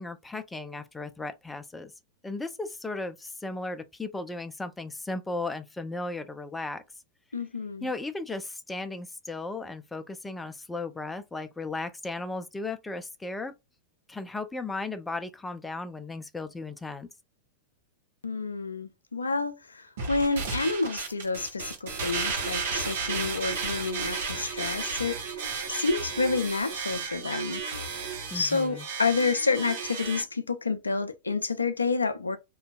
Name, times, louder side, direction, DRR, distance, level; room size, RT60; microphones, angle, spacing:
voice 1, 0.0-1.9 2.2-6.8 7.8-13.5 14.1-17.1 28.3-28.9, left 2 dB, 10° left, 0.4 m, -36 dB
voice 2, 7.3-7.9 18.2-27.6 28.3-32.4, left 4 dB, 85° left, 0.3 m, -29 dB
sound 1, 20.0-30.2, right 5 dB, 65° right, 0.9 m, -33 dB
2.6 x 2.2 x 2.2 m
figure-of-eight pair, 95°, 0 cm